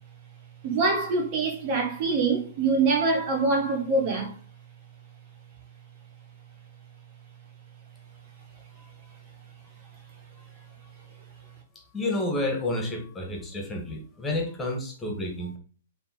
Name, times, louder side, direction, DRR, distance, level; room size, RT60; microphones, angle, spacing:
voice 1, 0.6-4.3, right 3 dB, 35° right, 1.3 m, -24 dB
voice 2, 11.9-15.6, left 1 dB, 10° left, 2.1 m, -30 dB
6.9 x 3.5 x 5.3 m
figure-of-eight pair, 110°, 0 cm